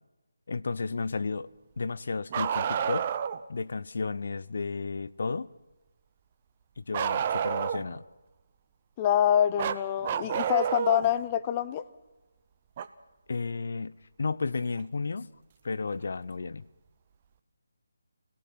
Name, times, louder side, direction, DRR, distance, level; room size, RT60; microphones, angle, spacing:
voice 1, 0.5-1.5 1.8-3.1 3.5-5.5 6.8-8.0 13.3-15.3 15.6-16.7, left 4 dB, 60° left, 17 dB, 0.7 m, -33 dB
Bark, 2.3-3.4 6.9-8.0 9.6-11.1 12.8-12.9 14.8-14.9 16.0-16.1, right 8 dB, 30° right, 0.8 m, -29 dB
voice 2, 9.0-11.8, left 10 dB, 20° left, 13 dB, 0.8 m, -26 dB
27.0 x 18.5 x 5.8 m, 1.0 s
figure-of-eight pair, 160°, 0 cm